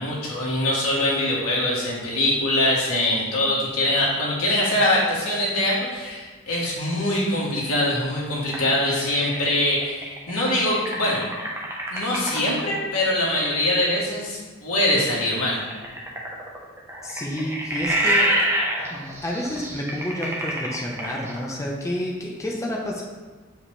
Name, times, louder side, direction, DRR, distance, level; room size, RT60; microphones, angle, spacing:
voice 1, 0.0-11.2 11.9-15.6, left 1 dB, 90° left, -5 dB, 2.0 m, -23 dB
sound 1, 8.5-12.6 15.5-21.5, right 1 dB, 10° right, 1.0 m, -26 dB
voice 2, 17.0-18.3 18.9-23.0, left 1 dB, 15° left, -2 dB, 0.8 m, -29 dB
8.0 x 5.0 x 3.4 m, 1.3 s
head